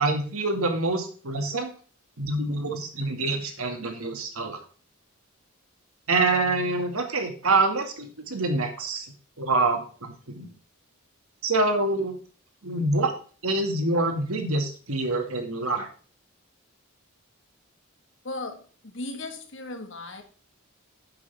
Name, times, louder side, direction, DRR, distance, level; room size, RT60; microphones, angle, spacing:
voice 1, 0.0-1.7 2.2-4.6 6.1-9.1 9.4-10.5 11.4-12.2 12.6-13.1 13.4-15.9, right 2 dB, 85° right, 5 dB, 2.1 m, -26 dB
voice 2, 18.2-20.2, left 2 dB, 60° left, 6 dB, 1.7 m, -36 dB
10.5 x 7.7 x 3.5 m, 0.40 s
head